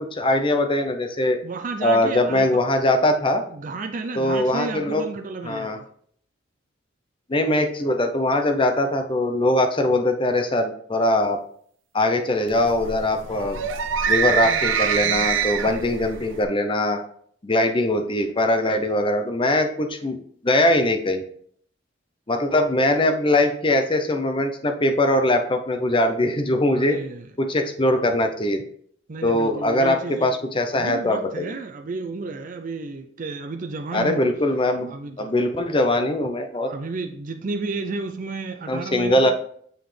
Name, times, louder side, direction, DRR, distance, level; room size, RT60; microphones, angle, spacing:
voice 1, 0.0-1.4 1.8-3.4 4.1-5.0 5.4-5.8 7.3-11.4 11.9-13.6 14.1-17.0 17.4-20.2 20.4-21.2 22.3-27.0 27.4-28.6 29.2-31.6 33.9-36.7 38.7-39.3, left 1 dB, 25° left, 6 dB, 0.7 m, -21 dB
voice 2, 1.4-2.6 3.5-5.9 26.7-27.3 29.1-30.3 30.7-34.3 34.9-35.3 36.6-39.3, right 3 dB, 45° right, 6 dB, 0.5 m, -32 dB
sound 1, 12.5-16.4, right 7 dB, 90° right, 0.6 m, -24 dB
6.9 x 5.8 x 3.3 m, 0.62 s
head